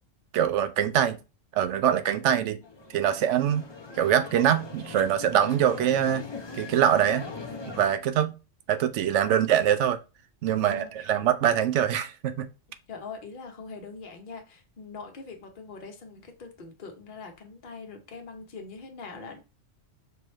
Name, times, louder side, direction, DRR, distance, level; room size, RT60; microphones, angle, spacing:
voice 1, 0.3-1.2 1.5-2.6 2.9-3.7 4.0-6.2 6.5-7.3 7.8-8.3 8.7-10.0 10.4-12.5, right 10 dB, 75° right, 0.9 m, -23 dB
sound 1, 2.6-7.9, left 4 dB, 25° left, 0.6 m, -40 dB
voice 2, 10.6-11.1 12.9-19.4, left 4 dB, 45° left, 1.0 m, -42 dB
5.5 x 3.0 x 3.1 m
omnidirectional pair, 1.3 m